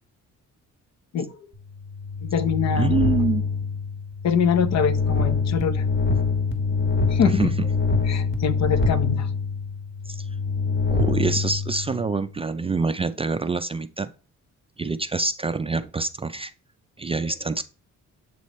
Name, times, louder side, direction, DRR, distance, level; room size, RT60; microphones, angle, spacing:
sound 1, 1.7-12.3, left 4 dB, 40° left, 1.4 m, -25 dB
voice 1, 2.2-2.9 4.2-5.9 7.1-7.5 8.1-9.3, left 7 dB, 60° left, 0.8 m, -24 dB
voice 2, 2.8-3.4 7.3-7.7 10.1-10.3 10.9-14.1 14.8-16.5 17.0-17.6, right 4 dB, 20° right, 0.3 m, -26 dB
7.6 x 3.1 x 4.1 m
cardioid pair, 90°, 30 cm